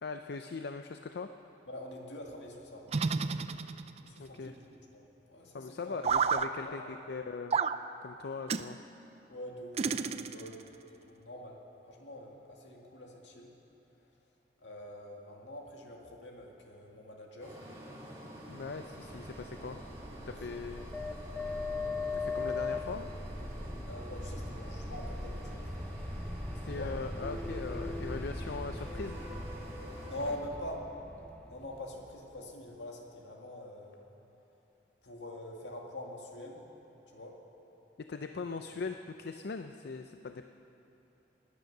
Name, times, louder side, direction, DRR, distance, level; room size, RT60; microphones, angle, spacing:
voice 1, 0.0-1.3 4.2-4.5 5.5-7.6 8.0-8.8 18.5-19.8 20.3-20.9 22.1-23.1 26.6-29.2 38.0-40.5, left 4 dB, 65° left, 7 dB, 0.5 m, -40 dB
voice 2, 1.7-3.4 4.0-4.6 4.9-6.2 6.6-7.0 9.3-13.5 14.6-17.6 23.9-25.8 26.7-26.9 30.0-30.9 31.5-34.0 35.0-36.7 37.1-37.4 38.4-38.8, left 1 dB, 80° left, 0 dB, 2.0 m, -45 dB
sound 1, 2.9-4.1 6.0-6.5 7.5-7.8 8.5-8.7 9.8-10.6, right 5 dB, 35° right, 0.4 m, -30 dB
sound 2, 17.4-30.3, right 1 dB, 15° right, 3.1 m, -48 dB
sound 3, 18.9-32.6, left 2 dB, 5° left, 0.7 m, -40 dB
19.5 x 9.3 x 6.6 m, 2.9 s
head